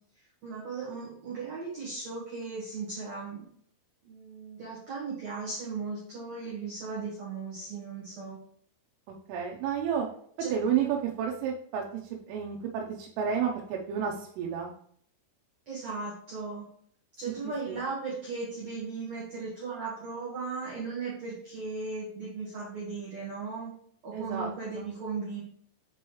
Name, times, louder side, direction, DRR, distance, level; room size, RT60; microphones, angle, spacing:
voice 1, 0.4-3.5 4.0-8.4 10.4-10.5 15.7-16.7 17.2-23.7 24.0-25.4, right 4 dB, 70° right, -7 dB, 1.6 m, -37 dB
voice 2, 9.3-10.1 10.5-14.7 17.7-17.8 24.1-24.5 24.8-24.9, right 7 dB, 90° right, -1 dB, 3.4 m, -31 dB
7.8 x 4.6 x 3.1 m, 0.62 s
omnidirectional pair, 5.6 m